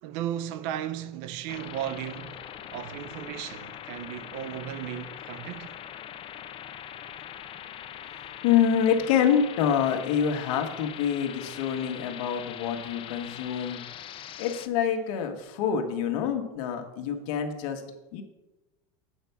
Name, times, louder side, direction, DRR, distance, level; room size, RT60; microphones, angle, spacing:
voice 1, 0.0-2.4 2.7-5.8, right 11 dB, 65° right, 0.7 m, -35 dB
sound 1, 1.5-14.7, left 10 dB, 30° left, 0.5 m, -42 dB
voice 2, 8.4-13.8 14.4-17.8 18.1-18.2, left 8 dB, 75° left, 1.4 m, -26 dB
8.7 x 4.6 x 6.9 m
supercardioid pair, 140°, 18 cm